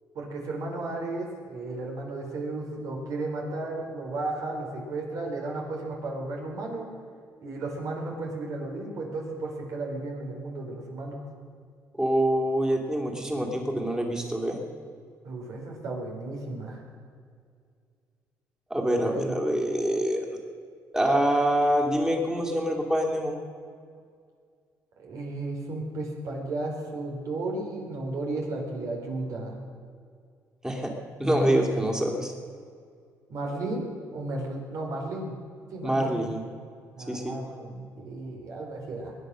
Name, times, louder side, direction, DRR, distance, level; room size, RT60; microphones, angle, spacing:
voice 1, 0.1-6.9 7.4-11.2 15.2-16.8 19.1-19.4 25.0-29.6 31.2-32.0 33.3-35.3 35.7-36.2 37.0-39.2, right 2 dB, 65° right, 0 dB, 4.5 m, -34 dB
voice 2, 12.0-14.6 18.7-20.3 20.9-23.4 30.6-30.9 31.2-32.3 35.8-36.4 37.1-37.4, right 1 dB, 10° right, 1 dB, 3.0 m, -25 dB
21.5 x 9.5 x 6.4 m, 2.2 s
cardioid pair, 105°, 6 cm